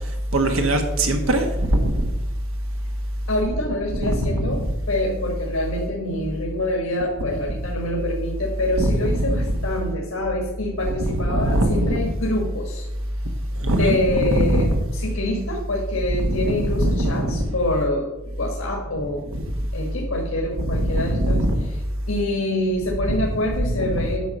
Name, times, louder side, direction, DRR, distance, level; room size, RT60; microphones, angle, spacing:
voice 1, 0.3-2.1 4.0-4.7 8.8-9.6 11.0-12.1 13.6-14.8 16.2-17.5 19.3-19.4 20.6-21.7 23.0-24.1, right 1 dB, 80° right, 4 dB, 1.3 m, -22 dB
voice 2, 3.3-12.8 13.5-19.2 19.7-21.5 22.1-24.3, left 1 dB, 80° left, -1 dB, 1.6 m, -26 dB
9.4 x 6.1 x 5.4 m, 0.95 s
head